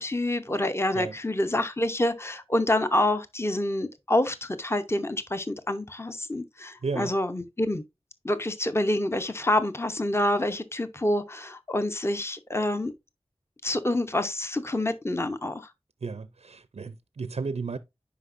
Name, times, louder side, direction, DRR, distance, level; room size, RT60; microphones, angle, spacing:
voice 1, 0.0-7.8 8.2-12.9 13.6-15.7, left 1 dB, 25° left, 0.8 m, -27 dB
voice 2, 16.0-17.8, right 4 dB, 85° right, 0.4 m, -33 dB
9.8 x 5.1 x 2.5 m
wide cardioid pair, 40°, 11 cm